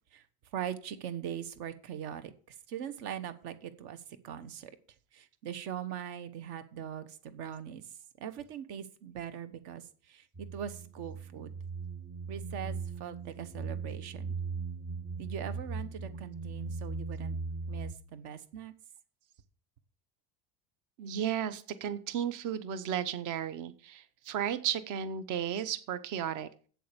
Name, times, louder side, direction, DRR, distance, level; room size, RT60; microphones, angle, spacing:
voice 1, 0.5-4.7 5.1-11.5 12.3-14.4 15.2-17.4 17.7-18.7, right 9 dB, 60° right, 12 dB, 1.3 m, -41 dB
sound 1, 10.4-17.9, right 4 dB, 15° right, 0.6 m, -39 dB
voice 2, 21.0-26.5, right 9 dB, 40° right, 13 dB, 0.8 m, -34 dB
8.1 x 7.5 x 6.7 m, 0.42 s
cardioid pair, 175°, 45 cm